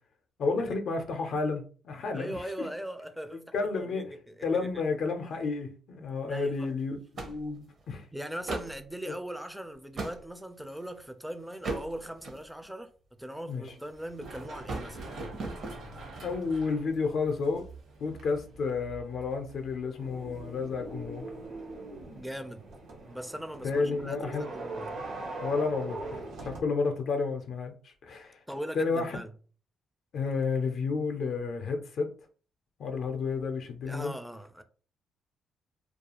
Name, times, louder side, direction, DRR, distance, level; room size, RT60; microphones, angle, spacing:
voice 1, 0.4-2.7 3.5-4.0 4.4-8.1 13.4-13.6 16.2-17.7 18.0-21.3 23.6-24.5 25.4-28.4 28.7-29.2 30.1-32.1 32.8-34.1, left 4 dB, 65° left, 0.5 m, -31 dB
voice 2, 2.1-4.7 6.3-6.7 8.1-12.9 13.2-15.0 22.2-22.7 23.1-24.9 28.5-29.3 33.9-34.6, right 1 dB, ahead, 0.4 m, -40 dB
sound 1, 6.5-6.7 7.2-7.8 8.3-8.8 9.5-10.2 10.8-11.1 11.6-12.6 13.3-14.0 14.3-15.8, right 3 dB, 55° right, 0.7 m, -38 dB
Run, 13.9-21.5, right 2 dB, 70° right, 1.1 m, -47 dB
sound 2, 20.0-26.6, right 2 dB, 90° right, 0.8 m, -40 dB
2.3 x 2.3 x 2.9 m
cardioid pair, 90°, 0 cm